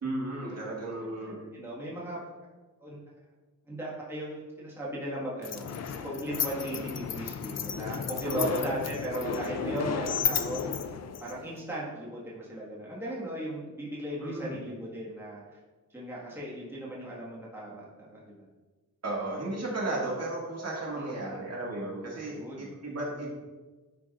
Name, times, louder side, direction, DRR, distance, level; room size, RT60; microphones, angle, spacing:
voice 1, 0.0-1.4 8.2-8.7 14.2-14.6 19.0-23.3, right 2 dB, 45° right, -4 dB, 1.9 m, -34 dB
voice 2, 1.0-2.2 2.8-3.0 3.7-5.6 6.0-10.6 11.2-15.6 15.9-18.4 20.9-21.4 22.3-22.7, equal, 5° right, -6 dB, 1.7 m, -37 dB
sound 1, 5.4-11.6, left 6 dB, 50° left, 0.5 m, -33 dB
10.5 x 4.6 x 2.5 m, 1.3 s
wide cardioid pair, 110°, 34 cm